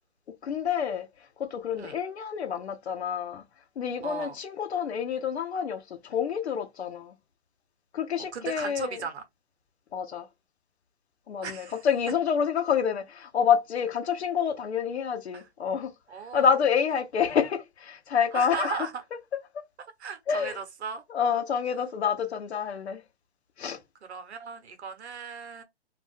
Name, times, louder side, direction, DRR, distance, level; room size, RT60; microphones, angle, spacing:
voice 1, 0.4-1.1 1.4-3.4 3.8-7.1 7.9-9.0 9.9-10.3 11.3-15.9 16.3-18.9 19.5-19.6 20.3-20.6 21.1-23.0 23.6-23.8, left 7 dB, 70° left, 0.8 m, -28 dB
voice 2, 4.0-4.4 8.3-9.2 11.4-11.8 15.3-15.4 16.1-16.5 18.3-18.9 20.0-21.0 24.0-25.6, right 6 dB, 70° right, 0.9 m, -36 dB
2.5 x 2.2 x 3.3 m
hypercardioid pair, 145°, 34 cm